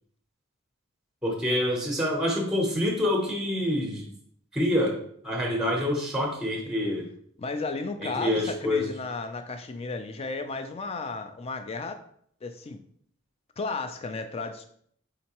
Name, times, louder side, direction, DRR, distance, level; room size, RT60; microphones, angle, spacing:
voice 1, 1.2-4.1 4.5-5.0 5.2-7.1 8.0-8.9, left 1 dB, ahead, 0 dB, 0.7 m, -26 dB
voice 2, 7.4-12.0 12.4-12.8 13.6-14.6, left 3 dB, 25° left, 8 dB, 0.3 m, -34 dB
4.3 x 3.8 x 2.9 m, 0.64 s
head